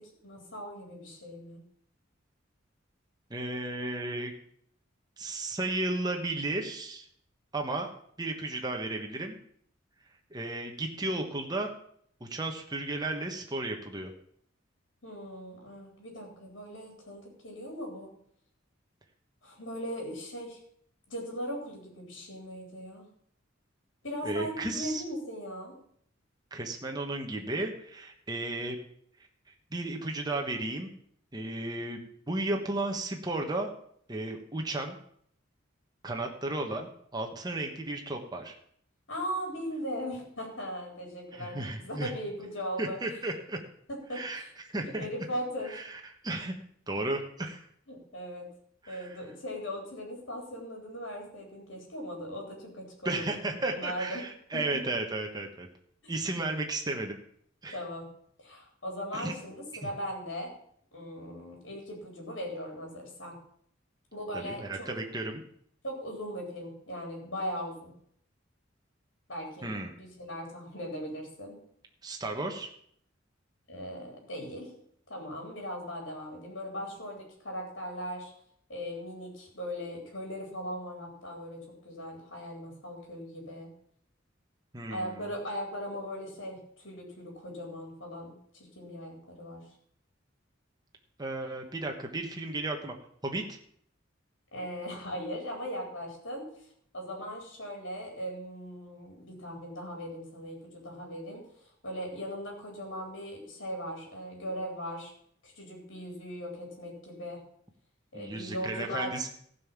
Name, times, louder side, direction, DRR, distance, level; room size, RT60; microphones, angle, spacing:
voice 1, 0.0-1.6 15.0-18.1 19.4-20.6 21.1-23.0 24.0-25.7 39.1-43.0 43.9-44.5 44.8-45.7 47.9-48.5 48.9-54.2 54.5-54.6 56.0-56.1 57.7-58.1 58.4-60.5 60.9-63.4 64.1-64.9 65.8-67.9 69.3-69.7 70.0-71.5 73.7-74.7 75.1-78.3 78.7-83.7 84.9-89.6 94.5-96.5 96.9-105.1 105.4-107.4 108.1-109.3, equal, 65° left, 0 dB, 3.8 m, -39 dB
voice 2, 3.3-4.3 5.2-7.1 7.5-7.9 8.2-9.4 10.3-11.7 12.2-14.1 24.2-25.0 26.5-28.8 29.7-30.9 31.3-33.7 34.1-35.0 36.0-38.5 41.3-42.1 42.8-43.6 44.1-45.1 45.7-46.5 46.9-47.6 48.8-49.2 53.0-55.7 56.1-57.2 57.6-57.8 59.1-59.3 59.8-59.9 64.3-65.4 69.6-69.9 72.0-72.7 84.7-85.3 91.2-92.9 93.2-93.6 108.1-109.3, right 2 dB, 20° right, 2 dB, 1.3 m, -34 dB
15.0 x 5.6 x 7.3 m, 0.66 s
head